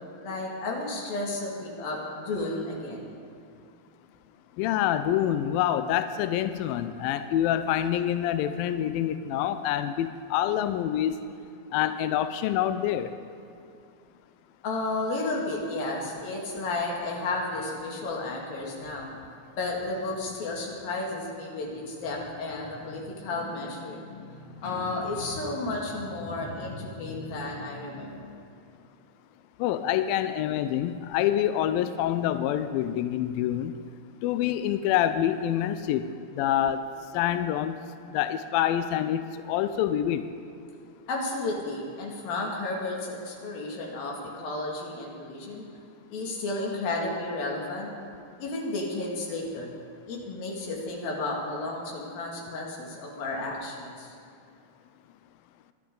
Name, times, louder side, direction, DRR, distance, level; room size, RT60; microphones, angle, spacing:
voice 1, 0.0-3.1 14.6-19.1 19.5-28.4 41.1-45.7 46.1-47.9 48.4-49.7 50.1-54.2, left 2 dB, 65° left, -2 dB, 3.8 m, -33 dB
voice 2, 4.6-11.2 11.7-13.1 29.6-33.7 34.2-36.1 36.4-36.9 37.1-37.8 38.1-40.2, left 11 dB, 85° left, 11 dB, 2.1 m, -26 dB
24.0 x 11.0 x 3.8 m, 2.4 s
omnidirectional pair, 4.6 m